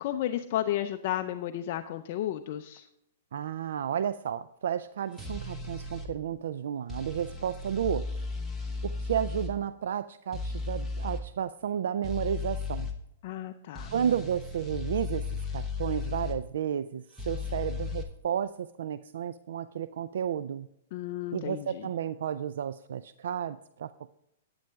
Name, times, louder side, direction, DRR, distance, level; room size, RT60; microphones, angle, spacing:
voice 1, 0.0-2.9 13.2-13.9 20.9-21.9, left 12 dB, 45° left, 7 dB, 0.4 m, -33 dB
voice 2, 3.3-8.2 8.8-12.9 13.9-15.3 15.5-20.7 21.3-24.1, right 9 dB, 75° right, 14 dB, 0.3 m, -32 dB
sound 1, 5.2-6.1 6.9-9.5 10.3-11.2 12.0-13.0 13.8-16.4 17.2-18.0, left 4 dB, 5° left, 0.9 m, -35 dB
10.5 x 9.0 x 3.5 m, 0.78 s
hypercardioid pair, 170°, 0 cm